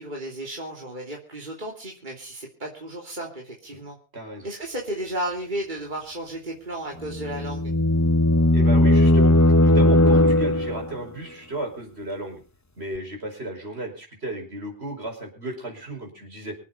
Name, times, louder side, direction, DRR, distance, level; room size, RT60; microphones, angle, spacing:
voice 1, 0.0-4.0 4.4-7.7, right 1 dB, 45° right, -1 dB, 3.2 m, -33 dB
voice 2, 4.1-4.5 8.5-9.3 9.6-12.4 12.8-16.6, right 1 dB, 70° right, 2 dB, 5.4 m, -34 dB
sound 1, 7.0-11.0, left 1 dB, 15° left, 0.8 m, -18 dB
25.0 x 8.4 x 5.5 m, 0.35 s
omnidirectional pair, 1.1 m